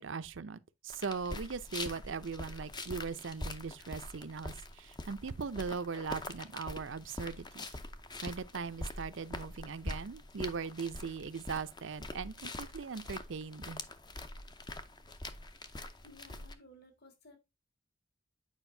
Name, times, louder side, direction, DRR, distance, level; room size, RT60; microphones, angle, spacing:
voice 1, 0.0-7.8 8.2-13.8, right 5 dB, 65° right, 0.6 m, -40 dB
sound 1, 0.9-16.5, left 2 dB, 20° left, 0.6 m, -44 dB
voice 2, 15.7-17.4, left 1 dB, 50° left, 2.0 m, -58 dB
9.0 x 5.0 x 2.7 m
head